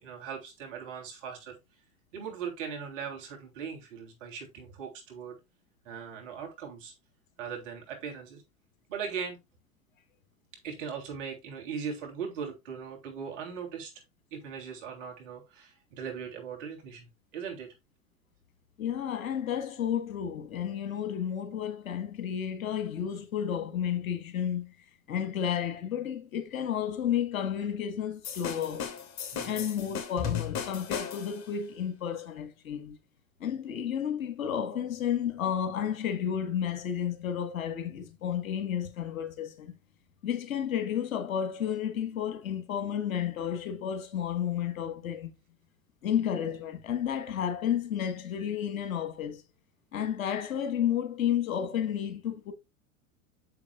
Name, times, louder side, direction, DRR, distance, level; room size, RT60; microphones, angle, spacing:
voice 1, 0.0-1.5 2.1-5.4 5.8-6.9 7.4-8.4 8.9-9.4 10.6-13.9 14.3-17.7 29.3-29.7, right 6 dB, 60° right, 3.3 m, -39 dB
voice 2, 18.8-24.7 25.1-28.9 29.4-33.0 33.4-39.7 40.2-45.3 46.0-49.4 49.9-52.5, left 9 dB, 70° left, 1.6 m, -32 dB
sound 1, 28.2-31.5, left 7 dB, 40° left, 2.9 m, -36 dB
9.7 x 7.1 x 2.4 m
figure-of-eight pair, 85°, 42 cm